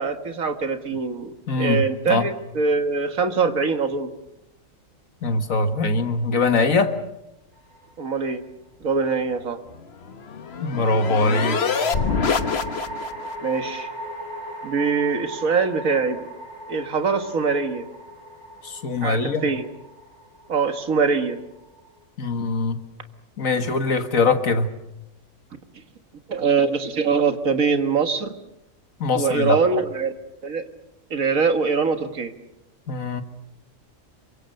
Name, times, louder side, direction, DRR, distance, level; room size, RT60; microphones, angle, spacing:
voice 1, 0.0-4.1 8.0-8.4 8.8-9.6 13.4-13.9 14.6-16.2 16.7-17.9 19.0-19.7 20.5-21.4 26.3-28.3 29.1-30.1 30.4-30.6 31.1-32.3, right 5 dB, 90° right, 7 dB, 2.1 m, -23 dB
voice 2, 1.5-2.3 5.2-7.0 10.6-11.6 18.6-19.5 22.2-22.8 23.4-24.7 29.0-29.6 32.9-33.2, left 3 dB, 80° left, 8 dB, 2.0 m, -22 dB
sound 1, 7.6-8.3 10.7-22.0, right 1 dB, 55° right, 6.9 m, -38 dB
sound 2, 9.7-13.3, left 5 dB, 50° left, 1.3 m, -26 dB
27.5 x 24.0 x 6.6 m, 0.88 s
omnidirectional pair, 1.4 m